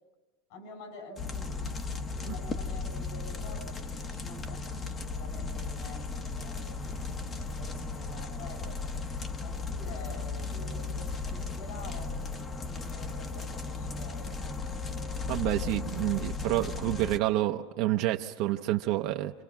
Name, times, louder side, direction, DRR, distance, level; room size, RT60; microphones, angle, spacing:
voice 1, 0.5-9.0 9.4-14.4, left 3 dB, 65° left, 7.1 m, -48 dB
sound 1, 1.2-17.2, left 3 dB, 20° left, 1.0 m, -36 dB
voice 2, 15.3-19.3, right 15 dB, 50° right, 0.8 m, -28 dB
29.5 x 27.0 x 5.9 m
supercardioid pair, 155°, 0 cm